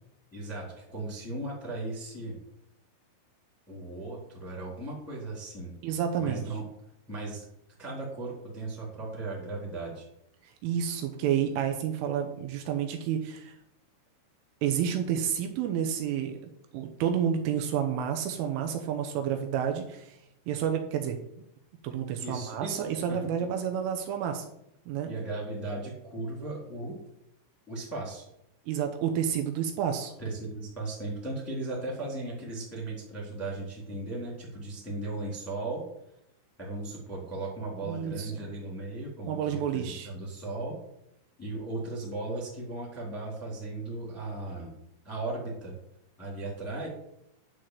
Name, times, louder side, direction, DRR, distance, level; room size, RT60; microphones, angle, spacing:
voice 1, 0.3-2.3 3.7-5.7 6.2-6.6 7.1-7.4 7.8-10.0 22.2-23.5 25.1-27.0 27.7-28.3 30.2-35.8 36.6-40.8 41.4-44.7 45.0-45.8 46.2-46.9, right 2 dB, 5° left, -3 dB, 1.8 m, -37 dB
voice 2, 5.8-6.4 10.4-13.6 14.6-16.4 16.7-20.2 20.5-21.2 21.8-24.5 24.9-25.1 28.7-30.1 37.8-38.3 39.3-40.1, right 8 dB, 75° right, 4 dB, 3.3 m, -30 dB
11.0 x 4.7 x 7.6 m, 0.79 s
omnidirectional pair, 6.0 m